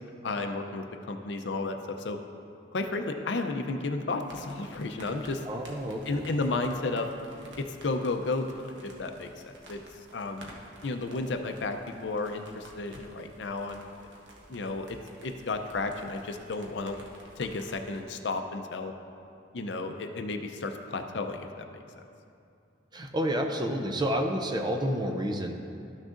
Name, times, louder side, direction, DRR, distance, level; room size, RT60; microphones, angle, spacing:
voice 1, 0.2-2.2 2.7-5.4 6.1-7.1 7.6-8.5 8.8-9.8 10.1-10.6 10.8-13.8 14.5-15.0 15.2-17.0 17.4-18.9 19.5-21.8, left 3 dB, 70° left, 6 dB, 0.5 m, -33 dB
sound 1, 4.2-18.0, right 1 dB, 85° right, 1.2 m, -52 dB
voice 2, 5.5-6.3 22.9-25.5, equal, 25° right, 3 dB, 0.6 m, -29 dB
13.0 x 6.3 x 2.5 m, 2.5 s
head